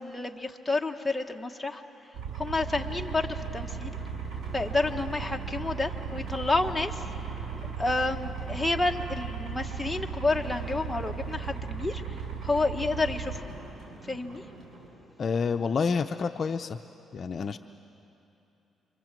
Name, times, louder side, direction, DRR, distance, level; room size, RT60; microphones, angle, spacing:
voice 1, 0.0-1.8 2.3-4.0 4.5-7.0 7.8-13.4 14.1-14.4, left 3 dB, 10° left, 3 dB, 1.5 m, -30 dB
sound 1, 2.1-13.4, right 6 dB, 80° right, 5.8 m, -36 dB
sound 2, 2.8-14.9, right 2 dB, 45° right, 7.1 m, -48 dB
voice 2, 15.2-16.8 17.1-17.6, left 5 dB, 50° left, 8 dB, 0.6 m, -28 dB
27.0 x 25.0 x 7.6 m, 2.9 s
cardioid pair, 90°, 0 cm